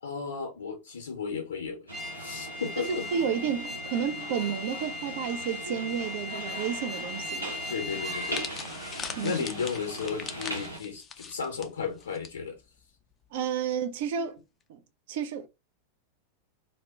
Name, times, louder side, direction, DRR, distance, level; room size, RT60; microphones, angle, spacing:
voice 1, 0.0-1.9 2.2-3.1 7.7-8.5 9.2-12.5, left 6 dB, 70° left, 0.6 m, -34 dB
sound 1, 1.9-8.5, left 3 dB, 5° right, 0.6 m, -39 dB
sound 2, 1.9-10.8, right 1 dB, 80° right, 0.8 m, -40 dB
voice 2, 2.8-7.5 9.2-9.4 13.3-14.4 14.7-14.8 15.1-15.5, right 8 dB, 50° right, 0.4 m, -31 dB
sound 3, 8.0-12.3 12.6-12.8 13.7-14.0, left 6 dB, 25° left, 0.3 m, -41 dB
2.1 x 2.1 x 3.5 m
figure-of-eight pair, 90°, 0 cm